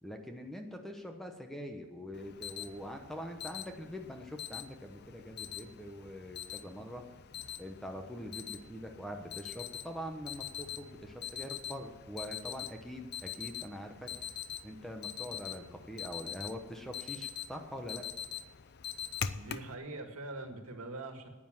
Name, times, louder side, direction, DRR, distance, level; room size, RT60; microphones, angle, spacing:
voice 1, 0.0-7.0 7.6-14.1 14.6-18.0, equal, ahead, 4 dB, 1.0 m, -44 dB
Alarm, 2.1-19.7, left 9 dB, 50° left, 0.5 m, -44 dB
voice 2, 19.4-21.3, right 2 dB, 85° right, 5 dB, 1.8 m, -43 dB
10.0 x 9.8 x 7.3 m, 1.3 s
head